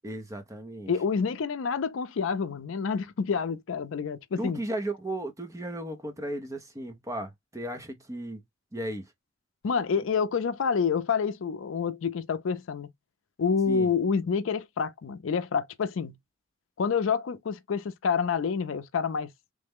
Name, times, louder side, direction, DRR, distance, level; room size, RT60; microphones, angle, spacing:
voice 1, 0.0-0.9 4.4-8.4 8.7-9.1 10.0-10.1 13.7-13.9, right 1 dB, 15° right, 0.6 m, -35 dB
voice 2, 0.9-4.6 9.6-12.9 13.4-16.1 16.8-19.3, left 6 dB, 75° left, 0.4 m, -28 dB
3.2 x 2.1 x 3.4 m
head